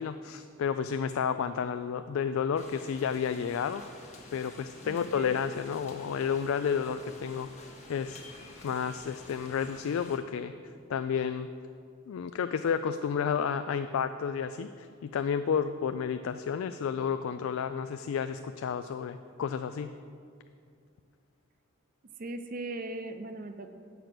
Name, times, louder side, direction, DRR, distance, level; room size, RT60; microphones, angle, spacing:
voice 1, 0.0-3.8 4.3-7.5 7.9-8.2 8.6-10.5 10.9-11.5 12.1-20.0, left 7 dB, 80° left, 10 dB, 0.3 m, -31 dB
sound 1, 2.6-10.2, left 2 dB, 35° left, 1.3 m, -50 dB
voice 2, 4.8-5.4 22.2-23.7, right 2 dB, 45° right, 8 dB, 0.6 m, -39 dB
9.1 x 6.8 x 5.9 m, 2.4 s
head